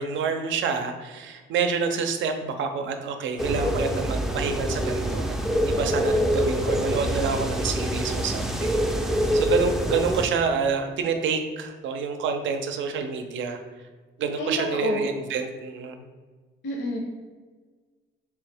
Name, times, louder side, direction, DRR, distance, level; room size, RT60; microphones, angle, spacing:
voice 1, 0.0-5.4 5.6-13.6 14.2-16.0, right 5 dB, 75° right, 6 dB, 0.5 m, -28 dB
sound 1, 3.4-10.2, equal, ahead, 0.4 m, -25 dB
voice 2, 14.4-15.0 16.6-17.0, left 1 dB, 65° left, -1 dB, 0.7 m, -29 dB
3.4 x 3.2 x 3.4 m, 1.4 s
cardioid pair, 90°, 20 cm